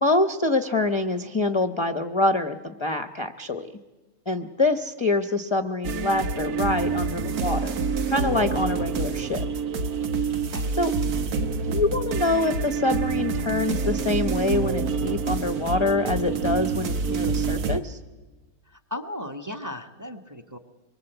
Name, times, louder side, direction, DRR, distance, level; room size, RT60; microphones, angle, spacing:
voice 1, 0.0-3.7 4.3-7.7 8.1-9.4 10.8-10.9 11.7-18.0, left 2 dB, 25° left, 9 dB, 0.8 m, -25 dB
sound 1, 5.8-17.8, right 5 dB, 85° right, 1.7 m, -27 dB
voice 2, 18.7-20.6, left 1 dB, 15° right, 8 dB, 1.4 m, -36 dB
25.0 x 23.0 x 8.0 m, 1.2 s
omnidirectional pair, 1.6 m